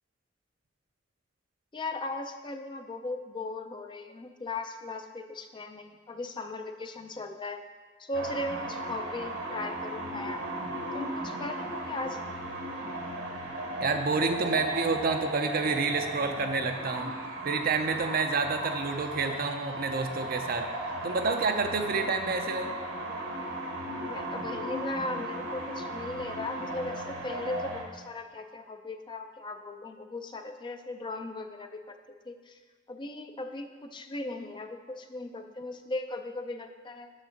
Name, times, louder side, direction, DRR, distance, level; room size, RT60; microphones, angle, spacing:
voice 1, 1.7-7.6 8.0-10.4 10.9-12.4 24.0-32.0 32.3-32.6 32.9-37.1, left 2 dB, 25° left, 6 dB, 0.5 m, -38 dB
sound 1, 8.1-27.8, right 1 dB, 85° right, 1.4 m, -36 dB
voice 2, 13.8-17.1 17.4-20.7 21.0-22.7, right 4 dB, 50° right, 6 dB, 0.6 m, -29 dB
6.3 x 4.8 x 6.4 m, 1.4 s
head